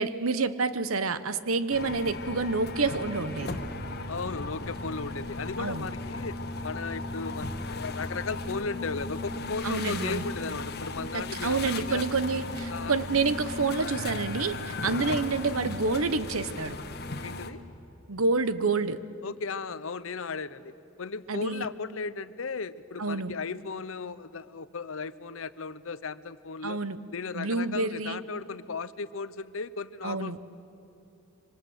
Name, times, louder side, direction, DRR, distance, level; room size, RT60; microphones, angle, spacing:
voice 1, 0.0-3.6 5.6-5.9 9.6-10.3 11.1-16.8 18.1-19.0 21.3-21.7 23.0-23.3 26.6-27.0 27.3-28.2 30.0-30.4, right 4 dB, 80° right, 13 dB, 1.0 m, -28 dB
sound 1, 1.7-17.5, left 2 dB, 50° left, 1.5 m, -36 dB
voice 2, 4.1-6.4 6.6-12.0 12.7-12.9 17.2-17.6 19.2-20.7 21.0-26.8 27.1-30.4, left 4 dB, 70° left, 15 dB, 0.8 m, -36 dB
26.0 x 25.0 x 8.0 m, 2.8 s
head